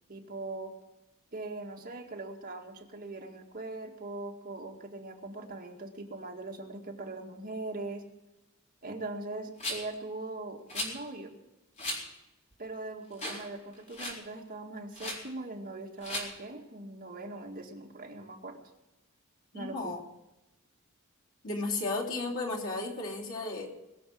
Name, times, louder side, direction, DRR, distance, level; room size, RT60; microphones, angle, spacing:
voice 1, 0.1-0.7 1.3-8.0 8.8-11.4 12.6-18.6 19.5-19.9, right 2 dB, 45° right, 1 dB, 2.0 m, -41 dB
Rattle, 9.6-9.9 10.7-10.9 11.8-12.0 12.5-12.6 13.1-13.5 13.7-14.2 14.9-15.2 16.0-16.3, left 1 dB, 35° left, 4.3 m, -36 dB
voice 2, 19.5-20.0 21.4-23.7, left 3 dB, 70° left, -2 dB, 3.3 m, -34 dB
21.5 x 7.3 x 7.7 m, 0.96 s
head